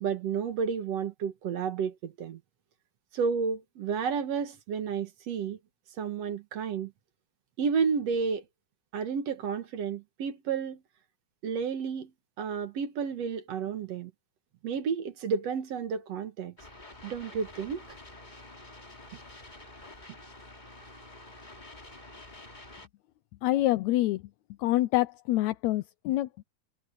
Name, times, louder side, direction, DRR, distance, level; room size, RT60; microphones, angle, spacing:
voice 1, 0.0-2.4 3.1-5.6 6.0-6.9 7.6-8.4 8.9-10.8 11.4-12.1 12.4-14.1 14.6-16.5 17.0-17.8, right 6 dB, 60° right, 2.4 m, -31 dB
sound 1, 16.6-22.9, left 2 dB, 15° left, 2.3 m, -48 dB
voice 2, 23.4-24.2 24.6-26.4, left 16 dB, 80° left, 1.9 m, -26 dB
omnidirectional pair, 3.4 m